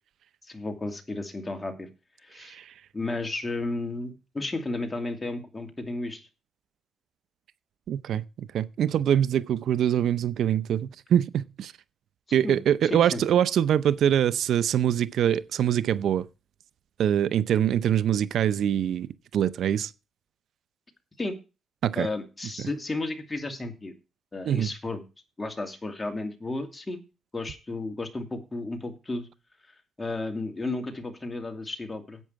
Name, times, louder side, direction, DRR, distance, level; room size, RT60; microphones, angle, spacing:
voice 1, 0.5-1.9 2.2-2.6 2.9-6.3 12.4-12.6 12.9-13.2 21.2-21.3 22.0-23.9 24.3-25.0 25.4-27.0 27.3-29.3 30.0-32.2, left 2 dB, 20° left, 2.6 m, -33 dB
voice 2, 2.4-2.7 7.9-11.7 12.3-16.3 17.0-19.9 21.8-22.1 24.4-24.7, right 10 dB, 70° right, 0.6 m, -24 dB
11.0 x 8.6 x 4.6 m
cardioid pair, 90°, 0 cm